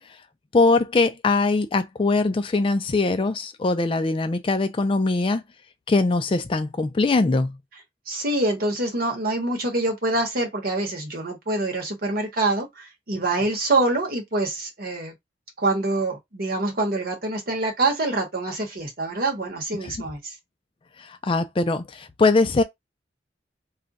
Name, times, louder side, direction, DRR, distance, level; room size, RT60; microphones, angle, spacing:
voice 1, 0.5-5.4 5.9-7.5 19.8-19.9 21.0-22.6, left 3 dB, 30° left, 0.3 m, -22 dB
voice 2, 8.1-15.1 15.6-20.3, right 2 dB, 55° right, 1.0 m, -25 dB
2.4 x 2.2 x 3.9 m
head